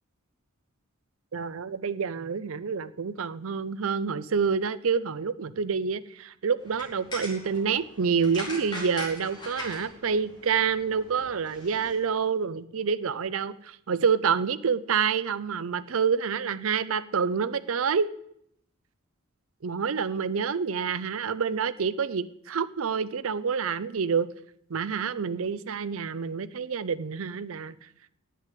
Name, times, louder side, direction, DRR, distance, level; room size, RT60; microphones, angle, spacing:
voice 1, 1.3-18.1 19.6-24.3 24.7-27.7, right 6 dB, 75° right, 15 dB, 0.6 m, -28 dB
sound 1, 6.6-11.9, left 1 dB, 20° left, 4.7 m, -41 dB
10.0 x 8.3 x 8.3 m, 0.74 s
head